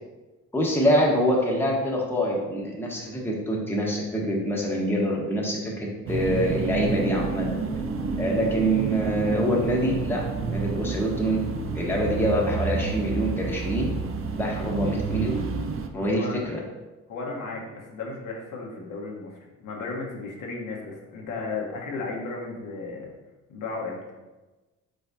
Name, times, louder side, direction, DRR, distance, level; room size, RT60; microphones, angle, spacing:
voice 1, 0.5-7.5 8.2-11.4 11.7-13.9 14.3-15.4 15.9-16.6, equal, 5° left, -3 dB, 1.1 m, -25 dB
sound 1, 6.1-15.9, right 5 dB, 45° right, 0.5 m, -30 dB
voice 2, 15.9-16.4 17.1-23.1 23.5-24.0, left 3 dB, 75° left, -2 dB, 1.1 m, -34 dB
5.0 x 3.9 x 2.6 m, 1.1 s
cardioid pair, 80°, 32 cm